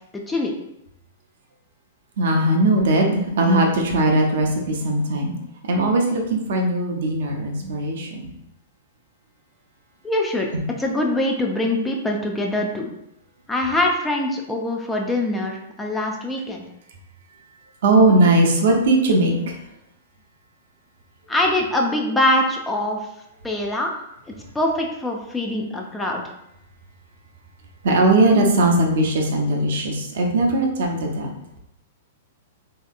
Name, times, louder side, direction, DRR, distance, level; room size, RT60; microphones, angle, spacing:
voice 1, 2.2-5.3 5.6-8.3 17.8-19.6 27.8-31.3, right 2 dB, 65° right, 1 dB, 0.6 m, -19 dB
voice 2, 10.0-10.5 10.8-12.9 13.5-16.6 21.3-23.0 23.4-23.9 24.5-26.2, left 1 dB, 10° left, 1 dB, 0.4 m, -23 dB
3.2 x 2.8 x 2.3 m, 0.83 s
hypercardioid pair, 110°, 0 cm